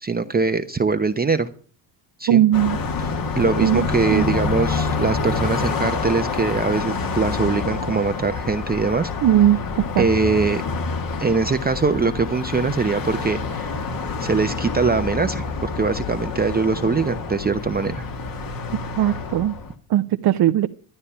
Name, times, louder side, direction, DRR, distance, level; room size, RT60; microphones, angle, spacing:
voice 1, 0.0-1.5 2.2-2.4 3.0-9.1 10.0-10.6 11.2-13.8 14.2-18.1, right 4 dB, 20° right, 8 dB, 0.8 m, -22 dB
voice 2, 2.3-2.8 3.6-3.8 4.1-4.2 9.2-9.6 10.0-10.1 19.0-19.5 19.9-20.7, right 12 dB, 50° right, 9 dB, 0.7 m, -18 dB
Car passing by, 2.5-19.7, left 4 dB, 40° left, 1.7 m, -27 dB
12.5 x 9.7 x 5.6 m, 0.43 s
supercardioid pair, 80°, 50 cm